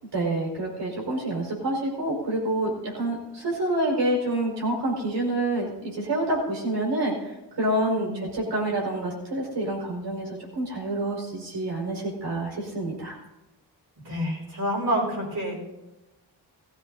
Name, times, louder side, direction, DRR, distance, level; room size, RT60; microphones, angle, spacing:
voice 1, 0.1-13.2, right 1 dB, 75° right, -2 dB, 4.9 m, -27 dB
voice 2, 8.0-8.3 14.0-15.6, equal, 60° right, -6 dB, 5.4 m, -28 dB
17.5 x 14.5 x 2.7 m, 0.98 s
cardioid pair, 90°, 42 cm